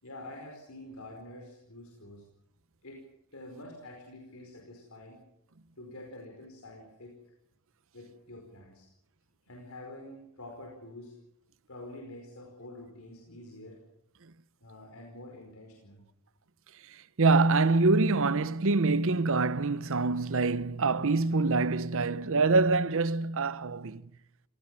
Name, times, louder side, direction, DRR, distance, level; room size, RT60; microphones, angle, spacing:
voice 1, 0.0-2.2 2.8-3.0 3.3-5.2 5.8-7.1 7.9-8.9 9.5-11.1 11.7-13.8 14.6-16.0, left 1 dB, 70° left, 5.0 m, -47 dB
voice 2, 17.2-24.0, right 3 dB, 65° right, 0.9 m, -25 dB
27.0 x 18.5 x 7.7 m
head